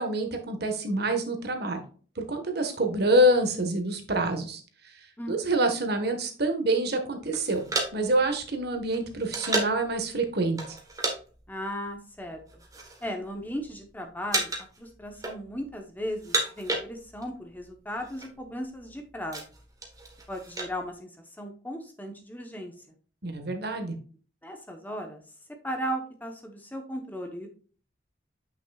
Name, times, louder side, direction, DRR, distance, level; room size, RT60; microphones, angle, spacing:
voice 1, 0.0-1.8 2.2-7.7 7.9-10.8 23.2-23.9, right 1 dB, 55° right, 5 dB, 1.4 m, -27 dB
sound 1, 7.3-9.9 10.6-11.2 11.4-11.6 12.3-13.1 13.4-13.9 14.3-14.8 15.1-15.7 16.1-17.4 17.6-17.7 17.9-18.3 18.8-20.7, right 2 dB, 20° right, 1.3 m, -32 dB
voice 2, 11.5-12.4 13.0-19.4 20.3-21.1 21.4-22.7 24.4-25.2 25.6-27.5, equal, 10° left, 4 dB, 0.9 m, -36 dB
8.4 x 6.1 x 2.3 m, 0.40 s
head